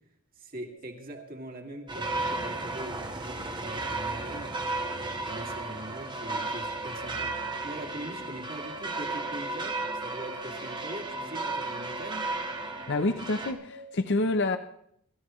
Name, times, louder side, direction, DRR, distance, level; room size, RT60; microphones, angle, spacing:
voice 1, 0.4-4.7 5.0-12.3, right 1 dB, 45° right, 2.4 m, -42 dB
sound 1, 0.7-13.9, equal, 75° right, 4.8 m, -50 dB
sound 2, 1.9-13.5, right 2 dB, 20° right, 1.3 m, -34 dB
voice 2, 12.9-14.6, left 2 dB, 55° left, 0.7 m, -27 dB
25.0 x 13.5 x 3.1 m
head